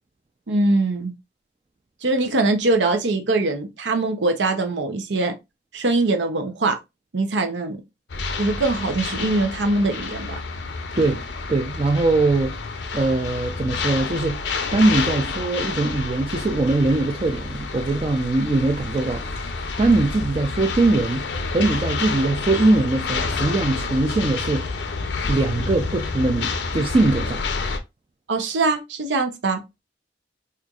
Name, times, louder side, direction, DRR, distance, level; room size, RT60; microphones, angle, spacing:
voice 1, 0.5-1.1 2.0-5.3 5.7-6.8 7.1-7.8 8.4-10.4 28.3-29.6, right 2 dB, 90° right, 0.7 m, -22 dB
sound 1, 8.1-27.8, left 4 dB, 75° left, 0.5 m, -29 dB
voice 2, 11.5-12.6 12.9-14.4 14.7-19.2 19.8-21.2 21.5-24.7 25.3-27.4, right 2 dB, 30° right, 0.4 m, -21 dB
4.3 x 2.5 x 2.3 m
head